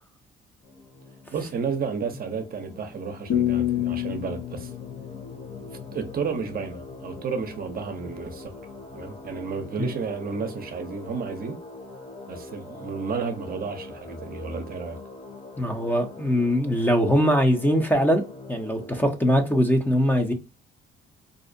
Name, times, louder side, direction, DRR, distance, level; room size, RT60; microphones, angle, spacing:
sound 1, 0.6-19.1, left 2 dB, 40° left, 1.1 m, -43 dB
voice 1, 1.3-4.7 5.5-8.5 8.9-11.6 12.3-15.0, right 5 dB, 50° right, 0.6 m, -32 dB
sound 2, 3.3-6.3, left 12 dB, 70° left, 0.6 m, -28 dB
voice 2, 15.6-18.2 18.5-20.3, equal, 10° left, 0.5 m, -22 dB
2.5 x 2.0 x 2.5 m
cardioid pair, 90°, 20 cm